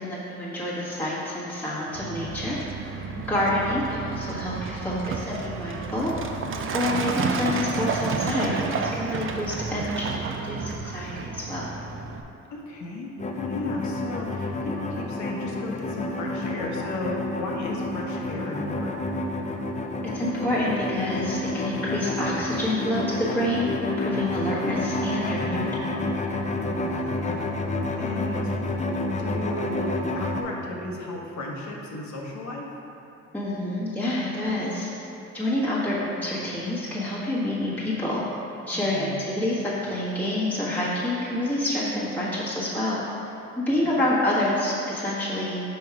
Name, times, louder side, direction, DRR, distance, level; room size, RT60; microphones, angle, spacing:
voice 1, 0.0-2.6 3.3-11.6 20.1-25.7 33.3-34.9 35.3-38.2 38.7-43.0 43.6-45.6, left 1 dB, 5° left, -8 dB, 1.3 m, -28 dB
Truck, 2.0-12.2, right 4 dB, 45° right, 0.5 m, -31 dB
voice 2, 3.2-3.6 4.8-5.2 12.5-13.1 13.4-19.1 26.5-27.4 28.0-28.5 29.2-32.6 38.7-39.1 43.8-44.0, left 2 dB, 70° left, -1 dB, 1.1 m, -35 dB
sound 1, 13.2-30.4, left 2 dB, 25° left, 0.5 m, -29 dB
5.3 x 4.7 x 4.7 m, 2.9 s
cardioid pair, 90°, 30 cm